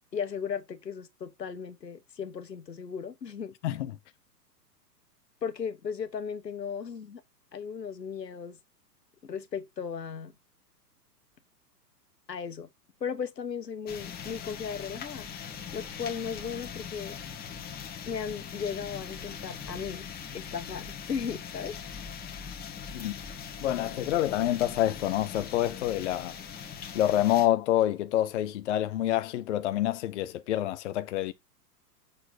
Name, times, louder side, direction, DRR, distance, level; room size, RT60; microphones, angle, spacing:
voice 1, 0.1-3.5 5.4-7.2 7.5-8.6 9.2-10.3 12.3-12.7 13.0-15.3 15.7-17.2 18.1-20.1 20.3-21.8, left 7 dB, 85° left, 1.3 m, -36 dB
sound 1, 13.9-27.5, left 7 dB, 20° left, 1.4 m, -41 dB
voice 2, 23.6-26.4 26.9-31.3, left 13 dB, 45° left, 0.6 m, -27 dB
6.6 x 4.5 x 3.8 m
figure-of-eight pair, 115°, 49 cm